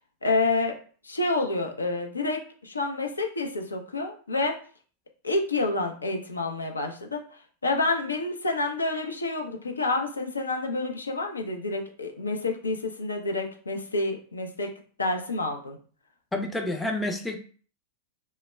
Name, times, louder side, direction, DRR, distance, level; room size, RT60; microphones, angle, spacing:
voice 1, 0.2-0.8 1.0-4.6 5.2-7.2 7.6-14.7 15.0-15.8, left 3 dB, 85° left, 3 dB, 0.4 m, -28 dB
voice 2, 16.3-17.4, left 1 dB, 10° left, 4 dB, 0.4 m, -29 dB
2.1 x 2.1 x 3.2 m, 0.42 s
figure-of-eight pair, 95°, 0 cm